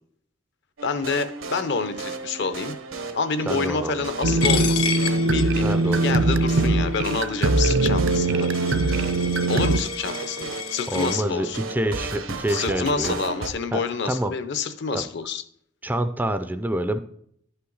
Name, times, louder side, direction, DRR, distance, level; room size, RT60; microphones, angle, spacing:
voice 1, 0.8-2.8 3.1-4.9 5.3-8.5 9.5-11.6 12.5-15.4, left 5 dB, 60° left, 11 dB, 0.6 m, -28 dB
sound 1, 0.8-13.5, right 3 dB, 80° right, 1.0 m, -35 dB
voice 2, 3.5-4.1 5.6-6.3 8.3-8.5 10.9-13.2 13.7-14.3 14.9-15.0 15.8-17.0, right 1 dB, 10° right, 10 dB, 0.3 m, -27 dB
sound 2, 4.2-9.8, right 2 dB, 65° right, 0.5 m, -21 dB
Coin (dropping), 4.4-11.2, left 7 dB, 90° left, 1.1 m, -32 dB
11.0 x 5.6 x 3.9 m, 0.67 s
head